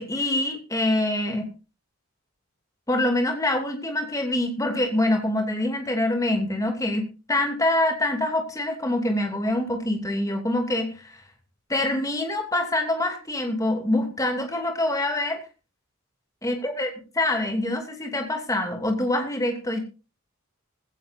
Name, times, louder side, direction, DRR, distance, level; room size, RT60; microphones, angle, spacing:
voice 1, 0.0-1.5 2.9-11.2 11.7-15.4 16.4-16.9 17.1-19.8, left 1 dB, 15° left, 4 dB, 2.7 m, -25 dB
19.0 x 16.5 x 2.7 m, 0.32 s
head